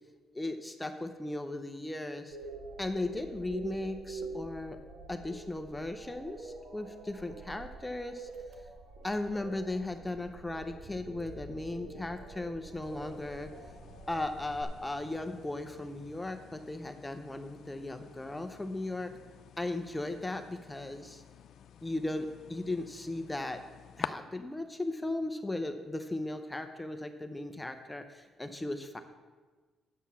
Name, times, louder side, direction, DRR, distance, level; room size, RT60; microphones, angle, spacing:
voice 1, 0.3-2.4 2.8-4.8 5.1-8.3 9.0-13.5 14.1-19.1 19.6-21.2 21.8-23.6 24.0-29.0, left 2 dB, 10° left, 7 dB, 0.7 m, -37 dB
sound 1, 2.3-14.6, right 3 dB, 80° right, 1.5 m, -46 dB
Car / Engine, 8.3-16.7, right 1 dB, 60° right, 1.3 m, -57 dB
sound 2, 12.8-24.1, left 10 dB, 70° left, 0.4 m, -49 dB
9.4 x 7.3 x 5.6 m, 1.4 s
cardioid pair, 90°, 0 cm